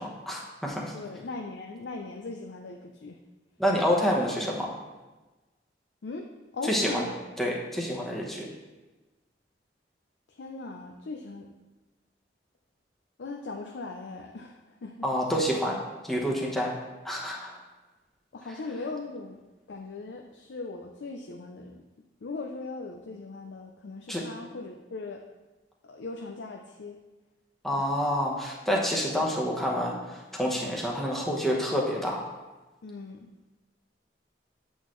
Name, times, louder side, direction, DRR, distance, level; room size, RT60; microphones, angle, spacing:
voice 1, 0.0-0.9 3.6-4.7 6.6-7.0 7.4-8.5 15.0-15.8 16.1-16.7 17.0-17.6 24.1-24.2 27.6-32.2, equal, ahead, -3 dB, 1.0 m, -28 dB
voice 2, 0.9-3.2 3.9-4.2 6.0-6.3 6.5-7.2 10.3-11.5 13.2-15.1 18.3-19.4 19.7-21.8 22.2-25.2 25.8-27.0 27.8-27.9 32.8-33.3, left 3 dB, 80° left, 3 dB, 0.5 m, -39 dB
8.0 x 6.3 x 3.1 m, 1.2 s
head